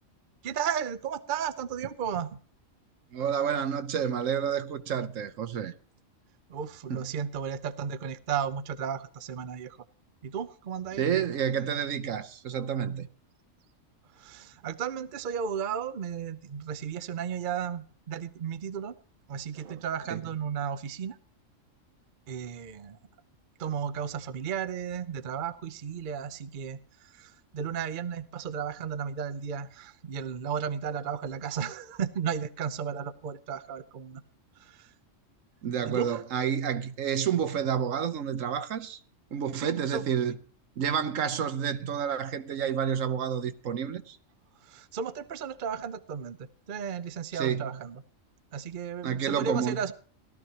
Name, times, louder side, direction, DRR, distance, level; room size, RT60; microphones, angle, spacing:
voice 1, 0.4-2.4 6.5-9.8 10.2-11.0 14.1-19.0 19.3-21.2 22.3-23.0 23.6-34.2 34.6-34.9 35.8-36.2 39.5-40.0 44.6-48.0 48.5-49.9, right 7 dB, 45° right, 0.7 m, -34 dB
voice 2, 3.1-5.7 6.9-7.1 11.0-13.1 20.1-20.2 35.6-39.0 39.3-40.4 40.8-44.2 47.3-47.7 49.0-49.8, right 8 dB, 75° right, 1.2 m, -29 dB
17.0 x 12.5 x 2.9 m
omnidirectional pair, 1.4 m